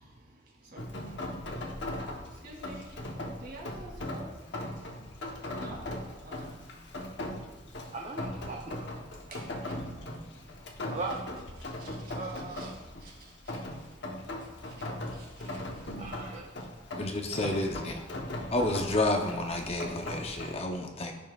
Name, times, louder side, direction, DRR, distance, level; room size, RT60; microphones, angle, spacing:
Rain, 0.8-20.6, left 1 dB, 60° left, 1.0 m, -39 dB
voice 1, 2.4-2.8 3.3-4.2 5.5-5.8 6.2-6.5 9.3-10.2 11.8-11.9 12.5-12.7 15.2-15.6, right 2 dB, 50° right, -3 dB, 2.5 m, -48 dB
voice 2, 7.9-8.9 10.9-11.1 12.1-12.7 14.4-14.5 16.0-16.5, right 3 dB, 35° right, 0 dB, 0.7 m, -39 dB
voice 3, 17.0-18.0 18.5-21.1, left 2 dB, 30° left, 2 dB, 0.7 m, -30 dB
15.0 x 5.5 x 2.4 m, 1.1 s
head